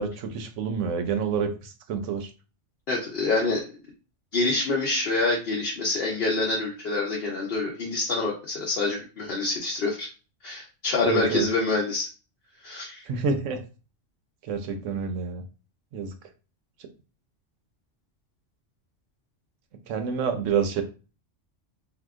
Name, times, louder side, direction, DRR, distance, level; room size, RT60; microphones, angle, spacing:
voice 1, 0.0-2.3 11.0-11.5 13.1-13.6 14.4-15.4 15.9-16.1 19.9-20.8, right 6 dB, 80° right, 7 dB, 0.9 m, -28 dB
voice 2, 2.9-3.6 4.3-10.1 10.4-12.1 12.6-13.0, left 3 dB, 55° left, -3 dB, 0.8 m, -26 dB
2.8 x 2.2 x 3.5 m, 0.34 s
omnidirectional pair, 1.3 m